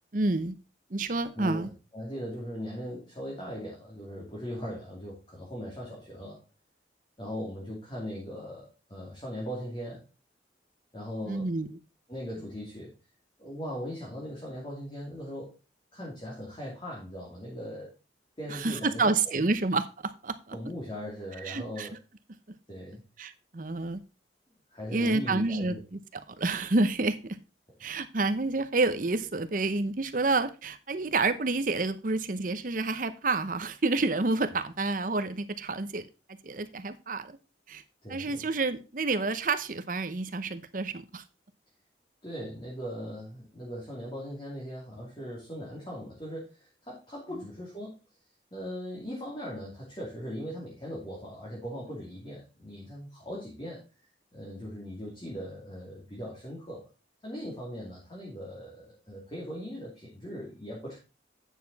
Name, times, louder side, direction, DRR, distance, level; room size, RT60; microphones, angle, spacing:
voice 1, 0.1-0.6 0.9-1.7 11.3-11.7 18.5-20.6 21.4-21.9 23.2-24.0 24.9-26.0 26.3-27.2 27.8-36.1 36.4-37.4 37.7-37.8 38.1-41.2, right 3 dB, 45° right, 11 dB, 0.8 m, -29 dB
voice 2, 1.3-6.4 7.2-10.0 10.9-11.5 12.1-12.9 13.4-15.5 15.9-17.9 18.4-19.5 20.5-21.9 22.7-23.0 24.7-25.8 38.0-38.4 42.2-48.0 48.5-53.8 54.3-56.9 57.2-61.0, equal, 25° left, -5 dB, 2.6 m, -39 dB
9.2 x 6.7 x 4.1 m, 0.31 s
head